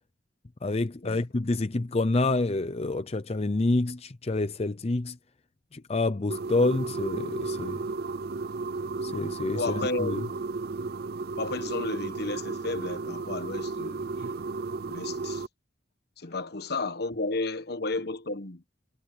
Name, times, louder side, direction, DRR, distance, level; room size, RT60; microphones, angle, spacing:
voice 1, 0.6-5.2 5.7-7.8 9.0-10.2, left 2 dB, 35° left, 0.6 m, -28 dB
sound 1, 6.3-15.5, right 3 dB, 55° right, 0.5 m, -33 dB
voice 2, 9.5-10.2 11.4-14.3 14.9-15.4 16.2-18.6, left 3 dB, 60° left, 1.2 m, -33 dB
head